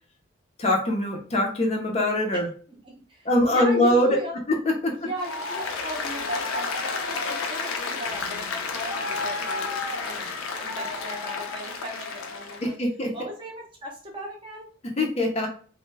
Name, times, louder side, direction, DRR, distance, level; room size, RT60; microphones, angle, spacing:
voice 1, 0.6-2.5 3.2-4.2 4.5-5.1 12.6-13.1 15.0-15.5, left 1 dB, 30° left, 2 dB, 0.4 m, -23 dB
voice 2, 2.9-4.4 4.9-12.8 13.1-14.7, equal, 25° right, 0 dB, 0.5 m, -37 dB
Applause, 5.2-12.7, left 4 dB, 85° left, 0.5 m, -31 dB
2.2 x 2.0 x 3.2 m, 0.43 s
head